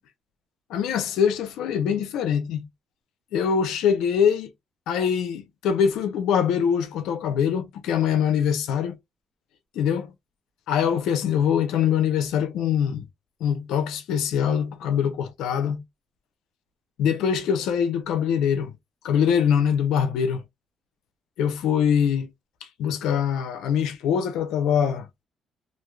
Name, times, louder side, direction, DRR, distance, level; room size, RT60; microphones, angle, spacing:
voice 1, 0.7-2.6 3.3-4.5 4.9-9.0 9.7-10.1 10.7-13.1 13.4-15.8 17.0-18.7 19.0-20.4 21.4-22.3 22.8-25.1, left 8 dB, 90° left, 0.6 m, -23 dB
2.6 x 2.4 x 3.1 m
cardioid pair, 90°, 0 cm